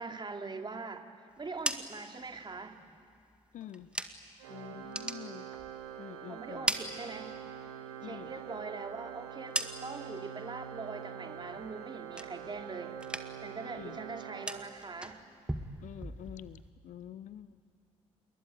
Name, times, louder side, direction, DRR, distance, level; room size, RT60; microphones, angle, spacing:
voice 1, 0.0-2.8 6.3-7.4 8.0-12.9 13.4-15.2, right 4 dB, 30° right, 5 dB, 2.5 m, -42 dB
sound 1, 1.3-4.4 4.8-6.1 6.4-7.7 8.0-10.2 10.6-11.0 11.4-12.7 12.9-13.6 13.8-16.7, right 1 dB, 5° right, 1.8 m, -40 dB
voice 2, 3.5-3.9 4.5-5.5 6.0-6.7 8.0-8.3 13.7-14.0 15.8-17.7, left 11 dB, 55° left, 18 dB, 0.7 m, -47 dB
Organ, 4.4-15.2, right 9 dB, 75° right, 1.6 m, -45 dB
27.5 x 22.0 x 9.5 m, 2.3 s
figure-of-eight pair, 40°, 16 cm